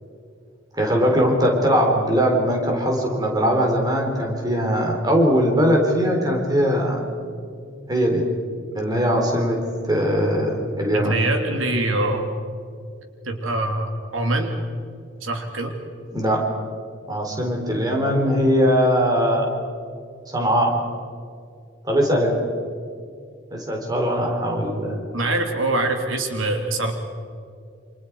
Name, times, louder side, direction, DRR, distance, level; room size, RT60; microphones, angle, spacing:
voice 1, 0.7-7.0 7.9-8.2 8.7-9.6 9.9-11.2 16.1-16.5 17.1-19.5 20.3-20.8 21.8-22.5 23.5-25.0, equal, 20° right, 1 dB, 3.9 m, -20 dB
voice 2, 10.9-12.2 13.2-14.5 15.2-15.7 25.1-26.9, right 2 dB, 85° right, 4 dB, 2.9 m, -24 dB
28.0 x 27.0 x 4.8 m, 2.4 s
head